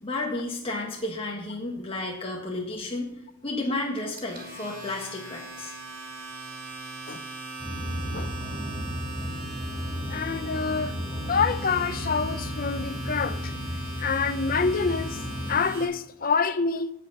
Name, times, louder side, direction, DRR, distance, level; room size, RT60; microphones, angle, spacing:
voice 1, 0.0-3.1 3.4-5.7, left 2 dB, 25° left, -1 dB, 1.6 m, -32 dB
Domestic sounds home sounds, 4.0-15.8, right 1 dB, 40° right, 3.4 m, -39 dB
sound 1, 7.6-15.6, equal, 15° right, 5.4 m, -34 dB
voice 2, 10.1-11.0 11.3-13.5 14.0-15.2 15.5-16.9, left 5 dB, 40° left, 13 dB, 0.6 m, -27 dB
17.0 x 5.6 x 6.0 m, 0.86 s
head